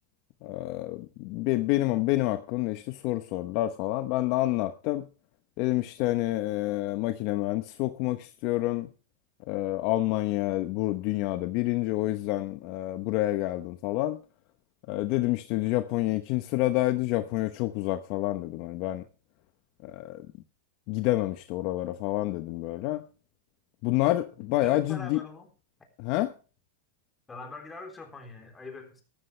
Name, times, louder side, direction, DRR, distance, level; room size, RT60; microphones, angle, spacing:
voice 1, 0.4-5.1 5.6-8.9 9.5-14.2 14.9-19.0 19.8-20.3 20.9-23.0 23.8-25.2 26.0-26.3, left 17 dB, 45° left, 0.9 m, -28 dB
voice 2, 24.6-25.5 27.3-29.0, left 3 dB, 10° left, 3.5 m, -43 dB
13.5 x 13.5 x 3.3 m
supercardioid pair, 140°, 0 cm